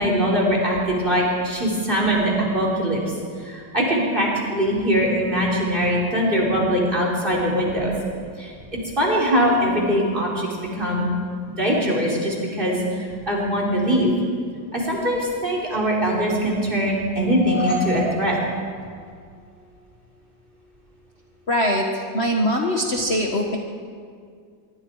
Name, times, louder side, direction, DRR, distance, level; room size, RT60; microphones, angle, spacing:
voice 1, 0.0-3.0 3.4-7.9 8.4-8.5 9.0-10.5 10.8-11.2 11.6-12.8 13.3-14.1 14.7-18.4, equal, 25° right, -2 dB, 4.7 m, -21 dB
sound 1, 17.1-19.4, left 1 dB, 70° left, 8.8 m, -31 dB
voice 2, 21.5-23.6, equal, 35° left, 0 dB, 1.7 m, -22 dB
24.5 x 24.0 x 4.9 m, 2.1 s
omnidirectional pair, 2.1 m